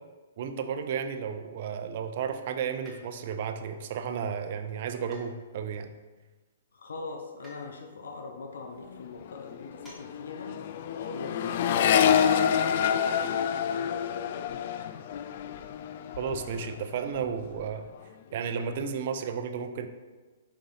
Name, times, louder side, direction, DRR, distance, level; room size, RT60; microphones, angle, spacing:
voice 1, 0.4-5.9 16.2-17.8 18.3-19.9, right 7 dB, 50° right, 7 dB, 0.6 m, -33 dB
sound 1, 2.8-3.4 5.1-5.8 7.4-7.7 9.8-10.1 10.3-10.4 12.1-12.3 12.6-12.7, equal, ahead, 1.6 m, -52 dB
voice 2, 6.7-10.6 10.9-14.7, left 4 dB, 80° left, 4 dB, 0.9 m, -42 dB
Accelerating revving vroom, 8.8-9.0 9.3-16.8 17.1-17.7, left 8 dB, 50° left, 0.3 m, -28 dB
5.3 x 3.8 x 5.6 m, 1.3 s
hypercardioid pair, 155°, 0 cm